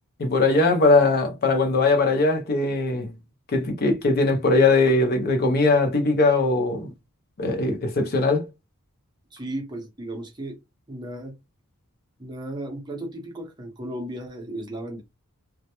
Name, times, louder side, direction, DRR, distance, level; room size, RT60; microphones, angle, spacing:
voice 1, 0.2-3.1 3.5-6.9 7.4-8.5, left 3 dB, 45° left, 0.5 m, -20 dB
voice 2, 9.3-10.6 10.9-11.3 12.2-15.0, right 1 dB, 20° right, 0.7 m, -35 dB
2.2 x 2.0 x 2.8 m
head